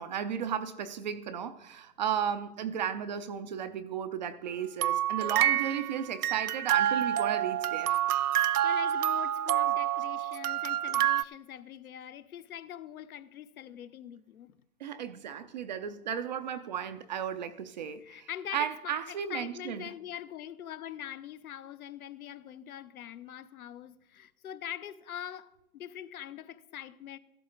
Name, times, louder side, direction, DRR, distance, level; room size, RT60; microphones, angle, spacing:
voice 1, 0.0-8.0 14.8-19.8, right 8 dB, 30° right, 0.4 m, -34 dB
sound 1, 4.8-11.2, right 11 dB, 80° right, 0.6 m, -28 dB
voice 2, 8.3-14.6 18.0-27.2, left 10 dB, 70° left, 0.9 m, -43 dB
14.5 x 12.0 x 3.8 m
hypercardioid pair, 130°, 45 cm